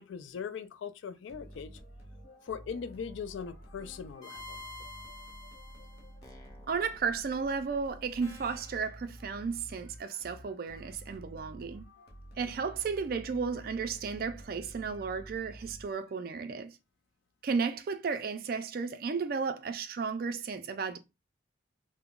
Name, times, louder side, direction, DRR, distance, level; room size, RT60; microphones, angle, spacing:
voice 1, 0.0-1.8 2.4-4.6, left 6 dB, 75° left, 0.3 m, -40 dB
sound 1, 1.3-16.2, equal, 55° left, 0.8 m, -50 dB
sound 2, 3.8-6.9 8.2-8.8, left 2 dB, 20° left, 0.5 m, -49 dB
voice 2, 6.7-11.9 12.4-16.7 17.4-21.0, right 5 dB, 50° right, 0.3 m, -34 dB
2.2 x 2.0 x 3.6 m
head